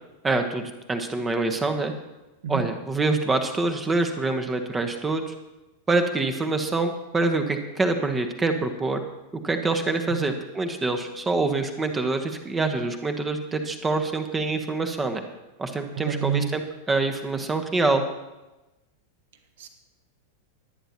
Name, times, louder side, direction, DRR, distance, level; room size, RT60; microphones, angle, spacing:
voice 1, 0.2-0.6 0.9-1.9 2.5-5.3 5.9-9.0 9.4-15.2 15.6-16.6 16.9-18.0, right 3 dB, 15° right, 6 dB, 1.1 m, -25 dB
voice 2, 15.9-16.5 19.6-19.7, right 6 dB, 55° right, 7 dB, 1.2 m, -28 dB
21.5 x 9.2 x 2.9 m, 1.0 s
figure-of-eight pair, 90°, 0 cm